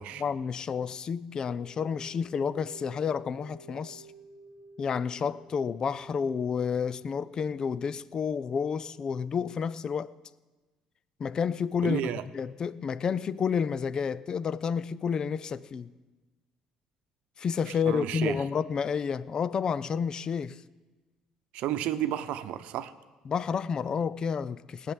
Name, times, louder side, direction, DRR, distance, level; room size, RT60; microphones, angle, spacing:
voice 1, 0.2-4.0 4.8-10.1 11.2-15.9 17.4-20.6 23.3-24.9, left 6 dB, 35° left, 0.4 m, -30 dB
sound 1, 1.5-6.6, right 1 dB, 10° right, 1.4 m, -52 dB
voice 2, 11.8-12.2 17.7-18.4 21.5-22.9, right 12 dB, 75° right, 0.8 m, -32 dB
18.0 x 6.7 x 9.1 m
cardioid pair, 135°, 2 cm